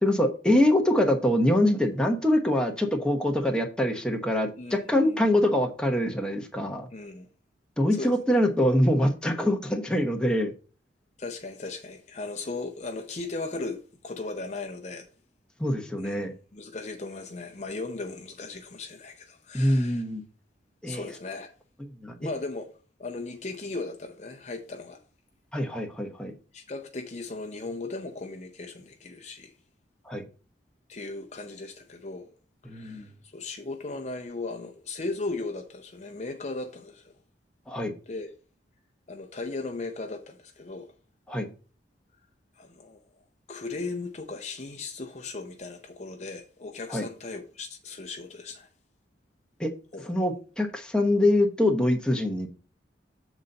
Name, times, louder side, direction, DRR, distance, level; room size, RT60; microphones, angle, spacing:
voice 1, 0.0-6.9 7.8-10.5 15.6-16.3 19.5-20.2 20.8-21.0 22.0-22.1 25.5-26.3 30.1-30.2 32.7-33.1 37.7-37.9 41.3-41.5 46.9-47.1 49.6-49.7 50.1-52.5, left 1 dB, 5° left, 1.0 m, -24 dB
voice 2, 4.6-5.2 6.9-7.3 7.9-8.4 11.2-15.1 16.0-16.3 16.5-20.0 20.9-21.5 22.2-22.7 23.0-25.0 26.5-29.5 30.9-32.3 32.6-37.1 38.1-38.3 39.1-40.9 42.6-43.0 43.5-48.7 49.9-50.1, left 3 dB, 40° left, 0.6 m, -37 dB
7.2 x 4.0 x 5.3 m
head